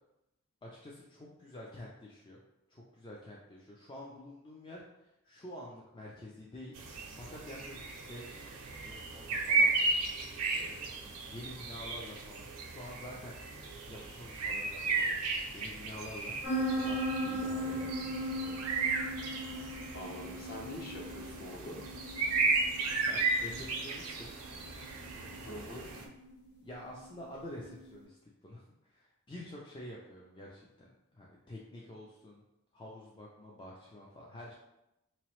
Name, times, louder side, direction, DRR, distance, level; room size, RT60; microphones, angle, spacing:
voice 1, 0.6-2.4 2.7-6.8 7.2-8.6 8.8-9.7 10.5-18.6 22.6-24.3 25.2-25.5 26.0-26.1 26.6-32.4 32.7-34.5, left 1 dB, 20° left, -4 dB, 0.4 m, -48 dB
sound 1, 6.8-26.0, right 3 dB, 85° right, 0.6 m, -35 dB
sound 2, 16.4-27.9, equal, 75° left, 1.2 m, -39 dB
voice 2, 19.9-21.8 25.4-25.9, left 1 dB, 45° left, -1 dB, 0.9 m, -44 dB
3.7 x 3.0 x 3.0 m, 0.89 s
head